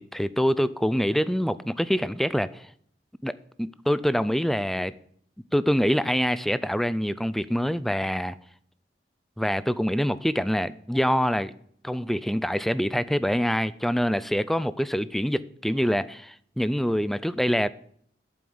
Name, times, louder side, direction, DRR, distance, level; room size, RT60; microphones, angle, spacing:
voice 1, 0.0-2.7 3.2-4.9 5.5-8.4 9.4-11.5 11.8-17.7, equal, ahead, 0.4 m, -25 dB
8.5 x 7.6 x 7.9 m
head